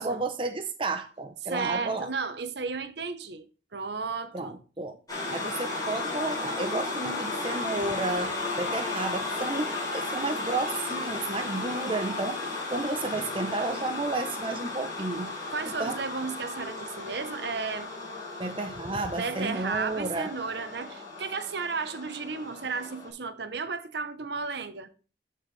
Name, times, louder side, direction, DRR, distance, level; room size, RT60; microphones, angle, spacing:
voice 1, 0.0-2.1 4.3-5.0 5.3-15.3 15.8-16.0 18.4-20.3, right 3 dB, 25° right, 0.7 m, -32 dB
voice 2, 1.5-3.4 3.7-4.6 15.5-17.9 19.1-24.9, right 4 dB, 55° right, 0.8 m, -33 dB
sound 1, 5.1-23.1, left 3 dB, 20° left, 3.4 m, -34 dB
13.5 x 4.7 x 3.2 m
head